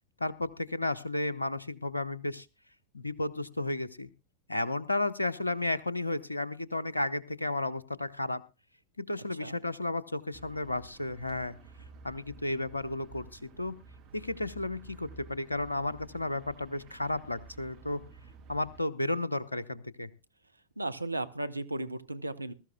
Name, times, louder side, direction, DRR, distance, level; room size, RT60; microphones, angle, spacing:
voice 1, 0.2-2.5 2.9-4.1 4.5-8.4 9.0-11.5 12.0-13.8 14.1-18.0 18.5-20.1, left 2 dB, 80° left, 16 dB, 0.9 m, -33 dB
sound 1, 10.3-18.8, right 4 dB, 40° right, 2.9 m, -52 dB
voice 2, 20.8-22.5, right 2 dB, 85° right, 11 dB, 0.7 m, -35 dB
21.0 x 13.5 x 2.3 m, 0.27 s
figure-of-eight pair, 90°, 0 cm